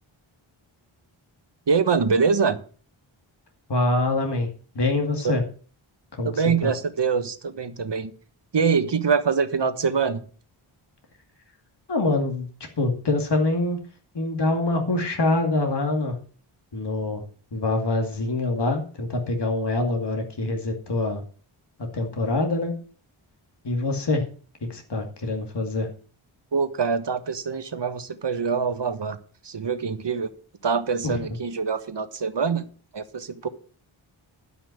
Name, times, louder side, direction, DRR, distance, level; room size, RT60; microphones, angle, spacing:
voice 1, 1.7-2.6 5.2-5.3 6.3-8.1 8.5-10.2 26.5-29.2 29.4-30.3 30.6-32.7 32.9-33.5, right 5 dB, 55° right, 10 dB, 1.3 m, -24 dB
voice 2, 3.7-4.5 4.7-5.4 6.1-6.7 11.9-12.5 12.8-13.8 14.1-16.1 16.7-17.2 17.5-21.2 21.9-22.7 23.6-24.2 24.7-25.9 31.0-31.3, left 2 dB, 55° left, 3 dB, 2.4 m, -25 dB
11.5 x 5.7 x 7.8 m, 0.41 s
wide cardioid pair, 60°, 50 cm